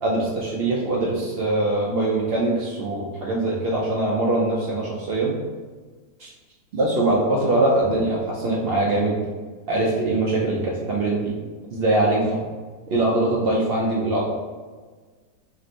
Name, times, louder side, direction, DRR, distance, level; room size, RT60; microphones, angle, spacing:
voice 1, 0.0-5.4 6.2-6.3 6.7-9.2 9.7-11.3 11.7-12.4 12.9-14.2, right 2 dB, 75° right, -3 dB, 0.5 m, -22 dB
3.5 x 2.5 x 4.3 m, 1.4 s
omnidirectional pair, 1.8 m